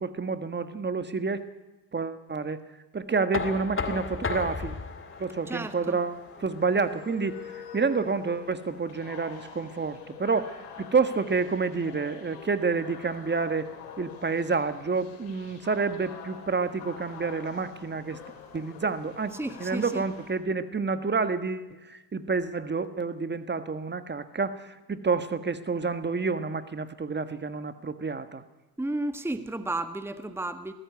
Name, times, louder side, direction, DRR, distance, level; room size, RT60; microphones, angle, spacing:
voice 1, 0.0-1.4 1.9-2.6 2.9-4.8 5.2-13.7 14.0-18.2 18.5-19.3 19.6-28.4, right 4 dB, 25° right, 11 dB, 1.5 m, -29 dB
Knock, 3.3-9.1, left 4 dB, 30° left, 2.3 m, -36 dB
sound 1, 3.9-20.3, left 7 dB, 90° left, 3.8 m, -46 dB
voice 2, 5.5-6.0 19.3-20.0 28.8-30.7, right 2 dB, 5° right, 9 dB, 1.4 m, -33 dB
20.0 x 14.5 x 9.7 m, 1.1 s
supercardioid pair, 75°, 44 cm